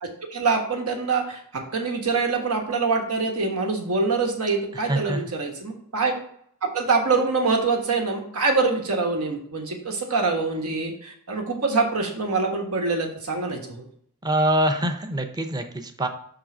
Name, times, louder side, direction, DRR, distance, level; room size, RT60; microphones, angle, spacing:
voice 1, 0.0-6.2 6.6-13.9, right 4 dB, 85° right, 2 dB, 1.4 m, -25 dB
voice 2, 4.7-5.2 14.2-16.1, right 1 dB, 20° right, 6 dB, 0.6 m, -24 dB
5.6 x 3.8 x 5.9 m, 0.65 s
head